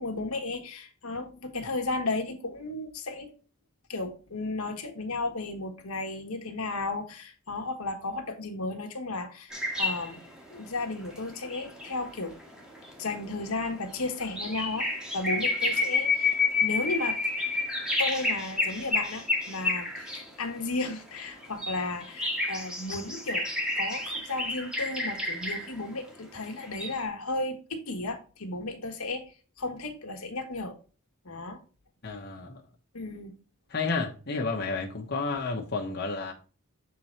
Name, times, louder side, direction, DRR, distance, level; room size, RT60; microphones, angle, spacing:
voice 1, 0.0-3.3 3.9-10.2 10.5-12.3 13.0-14.9 15.1-17.2 18.0-23.5 23.8-29.3 29.6-30.8 31.2-31.6 32.9-33.3, left 2 dB, 85° left, 1.3 m, -34 dB
sound 1, 9.5-20.3 20.9-25.7 26.6-27.0, left 3 dB, 5° right, 1.4 m, -30 dB
voice 2, 32.0-32.6 33.7-36.3, left 4 dB, 50° left, 1.1 m, -31 dB
7.1 x 3.8 x 4.4 m
head